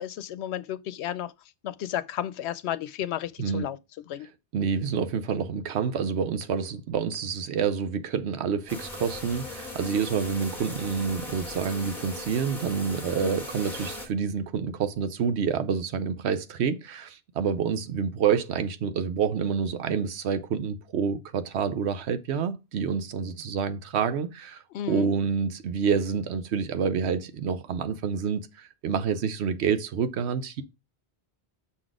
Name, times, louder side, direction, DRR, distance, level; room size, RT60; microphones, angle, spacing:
voice 1, 0.0-1.3 1.6-3.8 4.1-4.3 13.2-13.4 24.7-25.1, left 11 dB, 85° left, 0.9 m, -33 dB
voice 2, 4.5-24.6 24.9-30.6, right 6 dB, 85° right, 1.0 m, -28 dB
sound 1, 8.7-14.1, left 1 dB, ahead, 1.7 m, -38 dB
6.2 x 3.9 x 4.8 m
omnidirectional pair, 1.1 m